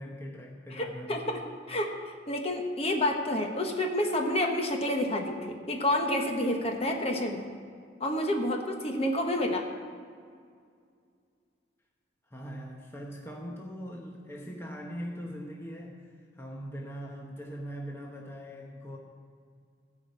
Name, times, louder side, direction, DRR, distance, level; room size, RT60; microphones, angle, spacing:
voice 1, 0.0-1.2 12.3-19.0, equal, 15° left, -1 dB, 0.9 m, -41 dB
voice 2, 0.7-1.9 2.3-7.4 8.0-9.7, left 1 dB, 35° left, 3 dB, 1.1 m, -29 dB
14.5 x 5.2 x 8.1 m, 2.2 s
head